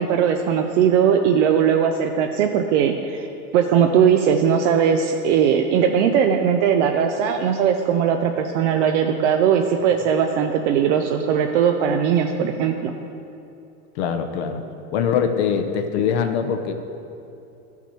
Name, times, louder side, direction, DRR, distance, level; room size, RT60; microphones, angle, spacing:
voice 1, 0.0-3.3 3.5-12.9, right 7 dB, 55° right, 4 dB, 0.6 m, -19 dB
voice 2, 14.0-14.6 14.9-16.7, left 7 dB, 50° left, 6 dB, 0.8 m, -22 dB
12.5 x 5.9 x 4.4 m, 2.7 s
supercardioid pair, 140°, 44 cm